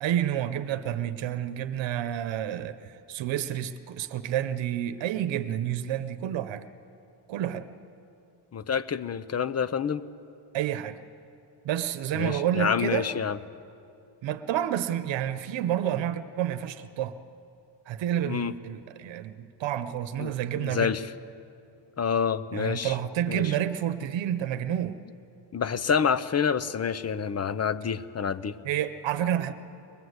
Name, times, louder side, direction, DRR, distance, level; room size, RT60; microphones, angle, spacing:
voice 1, 0.0-6.6 7.3-7.7 10.5-11.0 11.6-13.1 14.2-17.1 17.9-20.9 22.5-25.0 28.6-29.5, right 11 dB, 80° right, 10 dB, 1.0 m, -29 dB
voice 2, 8.5-10.0 12.1-13.4 18.2-18.5 20.2-21.1 22.0-22.9 23.3-23.5 25.5-28.6, left 7 dB, 35° left, 13 dB, 0.8 m, -28 dB
22.0 x 20.5 x 8.0 m, 2.6 s
cardioid pair, 110°, 44 cm